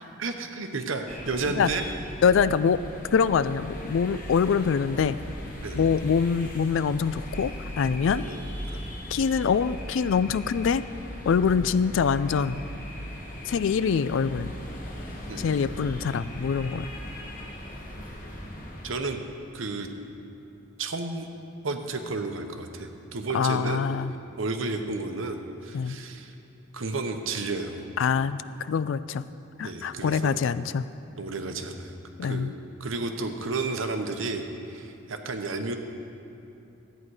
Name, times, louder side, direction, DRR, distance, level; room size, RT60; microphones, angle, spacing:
voice 1, 0.2-1.8 5.6-5.9 8.1-8.4 8.7-8.9 15.3-15.6 18.8-19.2 19.5-19.9 20.8-21.3 21.6-23.9 24.4-26.3 26.7-27.9 29.6-30.3 31.2-31.9 32.2-32.5 32.8-35.8, right 3 dB, 70° right, 6 dB, 0.9 m, -32 dB
sound 1, 1.1-18.9, equal, 40° left, 1.5 m, -38 dB
voice 2, 2.2-2.8 3.1-5.2 5.7-8.2 9.1-10.9 11.2-12.6 13.5-14.5 15.4-16.9 23.3-24.1 25.7-26.0 28.0-29.2 29.6-30.8 32.2-32.5, left 6 dB, 65° left, 15 dB, 0.3 m, -24 dB
14.0 x 9.1 x 4.8 m, 2.8 s
head